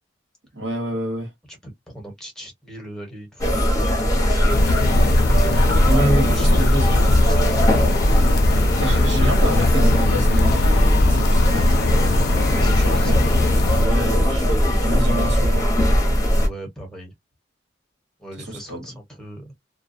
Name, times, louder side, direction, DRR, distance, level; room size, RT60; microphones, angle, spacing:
voice 1, 0.5-1.3 5.8-7.1 8.8-13.3 13.8-15.7 18.5-18.8, equal, 70° right, 1.3 m, -28 dB
voice 2, 1.5-5.0 6.1-7.0 7.3-7.9 12.5-13.3 16.4-17.1 18.2-19.5, right 1 dB, 5° left, 1.2 m, -39 dB
sound 1, 3.4-16.5, equal, 20° left, 0.9 m, -18 dB
sound 2, 4.5-13.9, left 4 dB, 55° left, 0.3 m, -23 dB
2.3 x 2.2 x 2.5 m
head